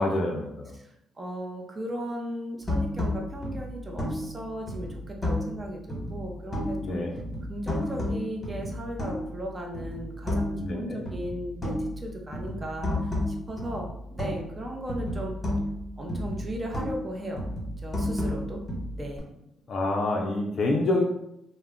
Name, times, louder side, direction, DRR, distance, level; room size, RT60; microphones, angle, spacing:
voice 1, 0.0-0.7 6.8-7.1 10.6-11.0 19.7-21.0, left 2 dB, 55° left, 0 dB, 0.4 m, -27 dB
voice 2, 0.7-7.0 7.5-15.4 16.0-17.5 17.8-18.6 19.0-19.3, equal, 25° right, 1 dB, 0.6 m, -36 dB
sound 1, 2.6-5.6 5.9-6.9 7.2-9.4 9.7-10.7 11.1-14.6 14.9-17.1 17.4-19.2, left 1 dB, 20° left, 1.1 m, -31 dB
2.2 x 2.0 x 3.5 m, 0.84 s
cardioid pair, 90°, 0 cm